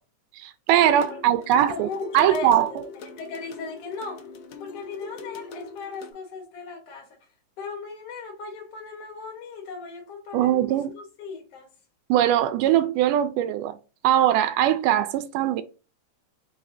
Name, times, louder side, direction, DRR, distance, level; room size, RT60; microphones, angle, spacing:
voice 1, 0.4-1.9 2.1-2.7 10.3-10.9 12.1-13.7 14.0-15.6, right 12 dB, 90° right, 2.1 m, -21 dB
sound 1, 0.7-6.1, left 4 dB, 75° left, 1.5 m, -40 dB
voice 2, 1.5-4.2 4.6-7.1 7.6-11.7, left 4 dB, 55° left, 2.1 m, -37 dB
4.9 x 4.0 x 2.6 m
omnidirectional pair, 3.6 m